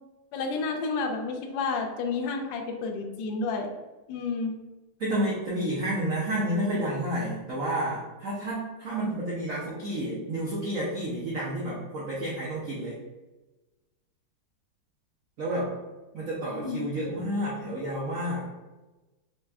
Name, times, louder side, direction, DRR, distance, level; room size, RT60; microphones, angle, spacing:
voice 1, 0.3-3.7 4.1-4.5 16.5-16.9 17.2-17.3, left 4 dB, 75° left, 3 dB, 1.1 m, -30 dB
voice 2, 5.0-13.0 15.4-15.7 16.1-18.4, right 1 dB, 80° right, -6 dB, 0.7 m, -30 dB
4.3 x 2.2 x 3.4 m, 1.1 s
omnidirectional pair, 2.4 m